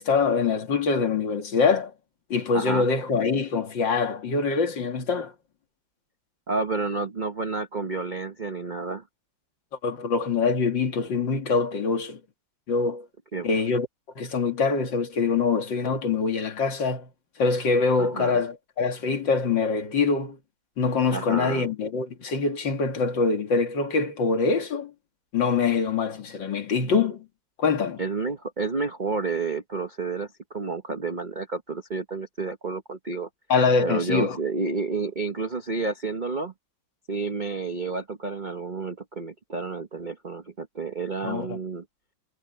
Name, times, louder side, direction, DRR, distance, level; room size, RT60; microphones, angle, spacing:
voice 1, 0.0-1.9 2.3-5.3 9.8-12.2 12.7-13.1 13.4-13.9 14.2-17.1 17.4-20.4 20.8-24.9 25.3-27.3 27.6-28.0 33.5-34.4 41.2-41.6, left 4 dB, 55° left, 2.7 m, -24 dB
voice 2, 2.5-2.9 6.5-9.0 13.3-13.5 18.0-18.4 21.1-21.7 28.0-33.3 33.8-36.5 37.1-41.8, right 4 dB, 35° right, 0.8 m, -30 dB
omnidirectional pair, 2.4 m